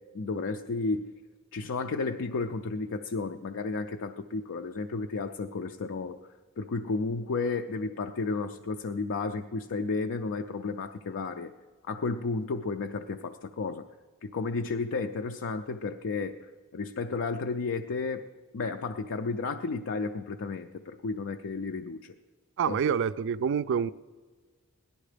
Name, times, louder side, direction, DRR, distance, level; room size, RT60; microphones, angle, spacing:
voice 1, 0.1-1.2 1.5-6.2 6.6-11.5 11.8-13.9 14.2-22.1 22.6-22.8, left 3 dB, 60° left, 0.5 m, -32 dB
voice 2, 22.6-23.9, right 7 dB, 55° right, 0.4 m, -27 dB
17.5 x 11.5 x 5.0 m
head